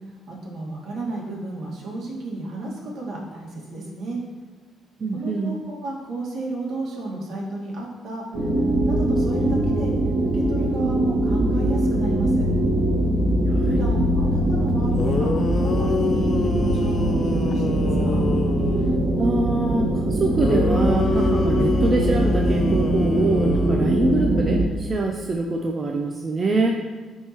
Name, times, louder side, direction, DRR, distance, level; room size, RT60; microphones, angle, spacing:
voice 1, 0.3-4.2 5.1-9.9 10.3-12.5 13.7-18.2, right 2 dB, 65° right, -3 dB, 1.8 m, -32 dB
voice 2, 5.0-5.6 13.5-13.8 19.2-26.8, right 3 dB, 35° right, 2 dB, 0.5 m, -24 dB
sound 1, 8.3-24.7, right 1 dB, 85° right, 1.3 m, -22 dB
sound 2, 14.7-14.8 15.0-19.1 20.4-24.4, left 4 dB, 50° left, 0.4 m, -28 dB
11.0 x 3.7 x 3.0 m, 1.3 s
cardioid pair, 90°, 0 cm